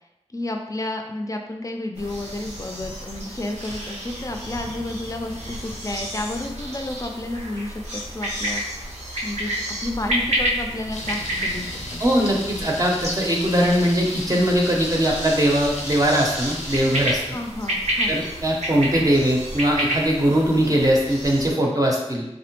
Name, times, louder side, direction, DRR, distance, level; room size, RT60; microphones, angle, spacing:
voice 1, 0.3-8.6 9.2-9.5 9.8-12.0 17.3-18.2, left 1 dB, 30° left, 3 dB, 0.4 m, -31 dB
sound 1, 1.9-21.5, equal, 90° right, 0.8 m, -30 dB
Thunder, 10.9-17.5, left 1 dB, 90° left, 0.5 m, -35 dB
voice 2, 12.0-17.2 18.1-22.2, equal, 30° right, -1 dB, 0.6 m, -20 dB
3.5 x 2.0 x 2.9 m, 0.90 s
wide cardioid pair, 60°, 12 cm